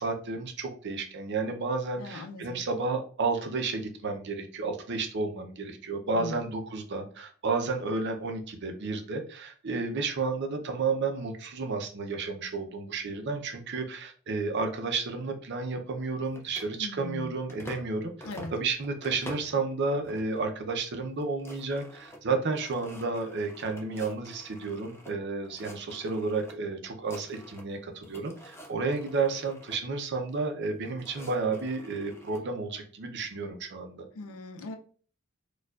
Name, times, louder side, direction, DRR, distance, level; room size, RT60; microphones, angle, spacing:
voice 1, 0.0-18.1 18.5-34.1, right 3 dB, 55° right, 5 dB, 0.6 m, -32 dB
voice 2, 2.0-2.6 6.1-6.5 16.8-17.3 18.2-18.5 34.1-34.8, left 2 dB, 85° left, 6 dB, 0.5 m, -39 dB
sound 1, 16.3-17.9 18.2-19.6 20.0-20.5 20.8-20.9 21.1-25.1 25.4-26.5 26.8-27.8 28.0-29.8 30.6-32.4, equal, 10° left, 0.5 m, -48 dB
4.4 x 2.3 x 2.4 m, 0.42 s
head